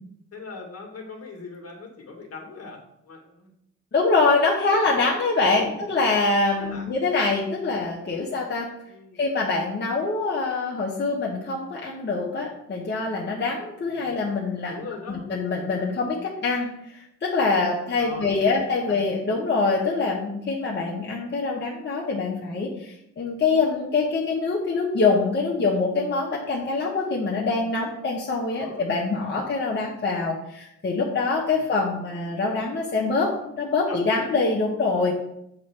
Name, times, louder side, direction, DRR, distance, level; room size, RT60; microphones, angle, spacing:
voice 1, 0.3-3.5 5.5-5.8 6.6-6.9 8.9-9.2 13.9-14.2 14.7-15.2 18.0-19.4 28.5-28.8 31.5-31.7 33.9-34.0, left 4 dB, 50° left, 1 dB, 1.9 m, -41 dB
voice 2, 3.9-8.7 9.2-14.8 15.1-33.3 33.6-35.1, left 3 dB, 35° left, -3 dB, 1.3 m, -24 dB
7.4 x 3.3 x 6.0 m, 0.79 s
cardioid pair, 90°, 30 cm